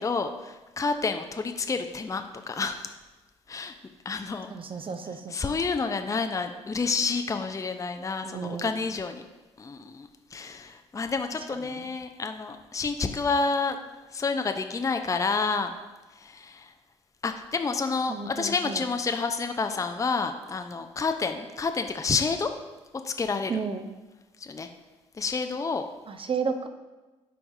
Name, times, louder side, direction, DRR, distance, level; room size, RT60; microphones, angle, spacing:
voice 1, 0.0-2.8 3.5-3.7 4.0-4.5 5.3-9.2 9.6-13.8 14.1-15.7 16.2-16.7 17.2-22.5 23.0-23.5 24.4-24.7 25.2-25.9, left 4 dB, 20° left, 7 dB, 0.5 m, -29 dB
voice 2, 4.5-5.5 8.3-8.7 18.1-18.8 23.5-23.9 26.1-26.7, right 5 dB, 35° right, 7 dB, 0.7 m, -32 dB
11.0 x 4.6 x 2.7 m, 1.2 s
hypercardioid pair, 45°, 15 cm